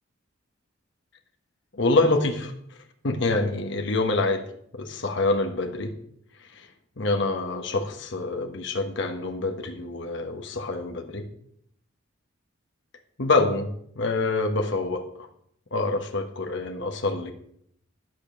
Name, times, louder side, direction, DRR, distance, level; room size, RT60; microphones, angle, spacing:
voice 1, 1.8-2.5 3.0-4.4 4.7-5.9 6.4-6.7 7.0-11.3 13.2-13.7 13.9-15.3 15.7-17.3, left 2 dB, 65° left, 5 dB, 1.2 m, -26 dB
11.5 x 5.2 x 6.4 m, 0.69 s
head